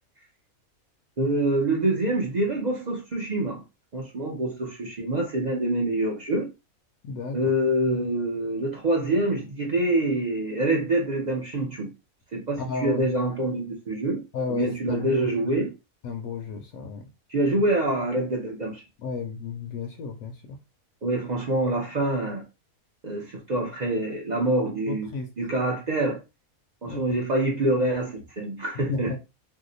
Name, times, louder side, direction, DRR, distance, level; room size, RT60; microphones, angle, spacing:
voice 1, 1.2-3.6 3.9-6.5 7.3-11.9 12.3-14.2 14.5-15.7 17.3-18.8 21.0-22.4 23.0-26.2 26.8-29.2, right 1 dB, 55° right, 0.5 m, -26 dB
voice 2, 7.0-7.4 12.6-13.0 14.3-15.3 16.0-17.0 19.0-20.3 24.9-25.3 26.9-27.0 28.9-29.2, left 4 dB, 80° left, 1.0 m, -32 dB
2.7 x 2.1 x 3.8 m
omnidirectional pair, 1.5 m